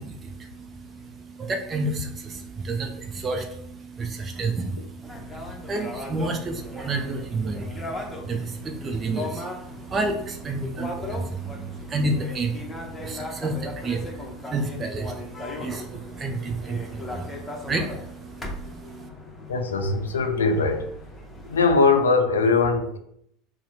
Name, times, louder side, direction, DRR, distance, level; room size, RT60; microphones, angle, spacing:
voice 1, 0.0-19.1, right 2 dB, 30° right, 5 dB, 0.5 m, -31 dB
sound 1, 5.0-21.6, left 1 dB, 10° left, 0.7 m, -38 dB
voice 2, 19.5-20.9 21.4-23.0, left 4 dB, 75° left, 6 dB, 0.4 m, -21 dB
2.8 x 2.0 x 4.0 m, 0.71 s
figure-of-eight pair, 75°, 0 cm